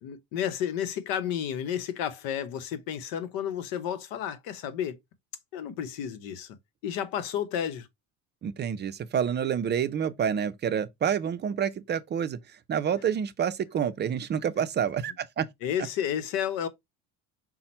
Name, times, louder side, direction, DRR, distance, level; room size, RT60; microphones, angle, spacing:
voice 1, 0.0-5.0 5.5-6.6 6.8-7.9 15.6-16.7, left 9 dB, 80° left, 0.9 m, -31 dB
voice 2, 8.4-15.5, right 8 dB, 30° right, 0.5 m, -28 dB
5.7 x 2.1 x 4.2 m
cardioid pair, 120°, 34 cm